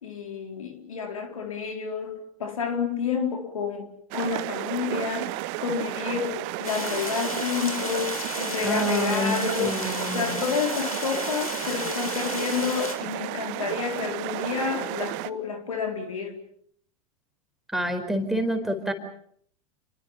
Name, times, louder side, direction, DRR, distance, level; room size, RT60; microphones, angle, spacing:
voice 1, 0.0-9.8 10.1-16.4, left 6 dB, 70° left, 4 dB, 4.1 m, -30 dB
sound 1, 4.1-15.3, right 18 dB, 45° right, 1.0 m, -33 dB
sound 2, 6.6-13.0, left 2 dB, 85° left, 3.8 m, -33 dB
voice 2, 8.6-10.4 17.7-18.9, equal, ahead, 6 dB, 4.6 m, -28 dB
30.0 x 24.0 x 5.8 m, 0.67 s
figure-of-eight pair, 85°, 18 cm